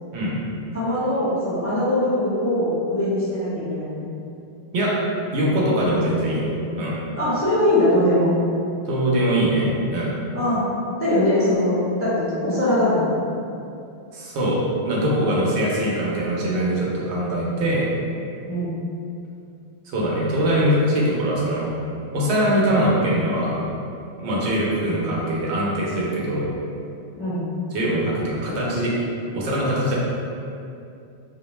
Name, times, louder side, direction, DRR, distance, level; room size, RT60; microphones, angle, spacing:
voice 1, 0.7-4.1 7.2-8.3 10.3-10.6 11.0-11.7 12.0-13.2 18.5-18.7 27.2-27.4, left 1 dB, 20° left, -11 dB, 0.4 m, -21 dB
voice 2, 5.3-6.4 6.8-7.0 8.9-10.2 14.1-14.6 14.8-17.9 19.9-21.7 22.1-23.6 24.2-26.5 27.7-28.9 29.3-30.0, right 1 dB, 90° right, -5 dB, 0.9 m, -22 dB
2.4 x 2.1 x 3.0 m, 2.6 s
omnidirectional pair, 1.1 m